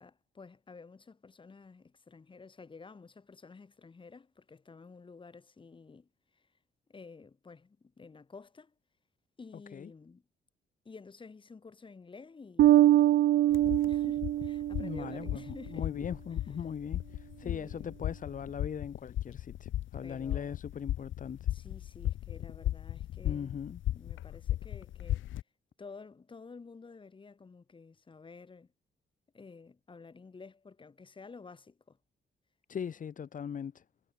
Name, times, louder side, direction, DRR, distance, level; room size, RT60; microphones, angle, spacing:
voice 1, 0.0-6.5 6.9-8.7 9.4-10.2 10.9-15.9 17.4-18.0 20.0-20.6 21.5-23.6 23.9-25.2 25.8-28.7 29.3-32.0, left 4 dB, 25° left, 3.7 m, -51 dB
Bass guitar, 12.6-15.2, right 13 dB, 65° right, 0.5 m, -24 dB
sound 1, 13.5-25.4, left 13 dB, 85° left, 1.2 m, -37 dB
voice 2, 14.8-21.5 23.2-23.8 32.7-33.8, left 7 dB, 40° left, 1.8 m, -40 dB
cardioid pair, 145°, 20 cm